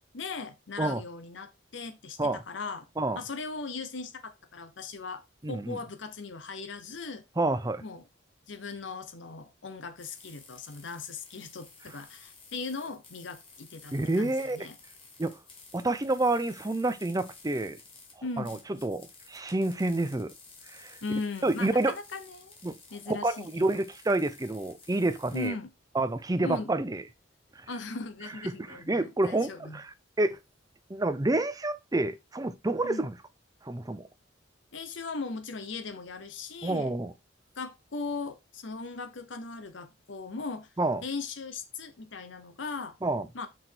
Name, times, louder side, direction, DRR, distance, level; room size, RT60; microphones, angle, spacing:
voice 1, 0.1-2.9 3.1-7.2 7.8-8.0 8.5-14.8 18.2-18.6 21.0-22.5 22.9-23.8 25.3-25.7 26.4-26.7 27.7-29.8 32.8-33.0 34.7-36.9 37.6-40.7 41.0-43.0 43.3-43.5, left 4 dB, 70° left, 0.9 m, -38 dB
voice 2, 5.4-5.8 7.4-7.8 13.9-14.7 15.2-15.4 15.7-17.8 18.4-20.3 20.7-21.0 21.4-21.9 22.6-22.8 23.1-25.5 26.0-27.0 28.4-29.9 30.2-30.4 30.9-33.2 33.6-34.1 36.6-37.1 40.8-41.0 43.0-43.3, right 2 dB, 20° right, 0.6 m, -28 dB
sound 1, 10.0-25.5, left 4 dB, 30° left, 1.9 m, -54 dB
6.0 x 4.8 x 4.5 m
head